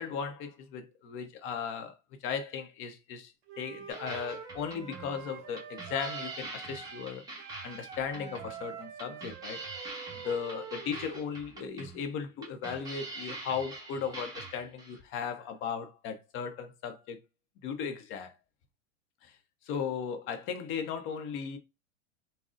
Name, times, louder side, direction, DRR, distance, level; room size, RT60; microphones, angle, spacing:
voice 1, 0.0-1.9 2.2-7.3 7.6-9.6 10.2-17.2 17.6-18.3 19.2-19.4 19.6-21.6, left 6 dB, 35° left, 0.6 m, -36 dB
Wind instrument woodwind instrument, 3.5-7.1 7.4-11.3, right 8 dB, 35° right, 0.5 m, -46 dB
sound 1, 3.9-15.0, right 2 dB, 10° right, 0.9 m, -44 dB
3.6 x 2.0 x 2.4 m
supercardioid pair, 130°, 37 cm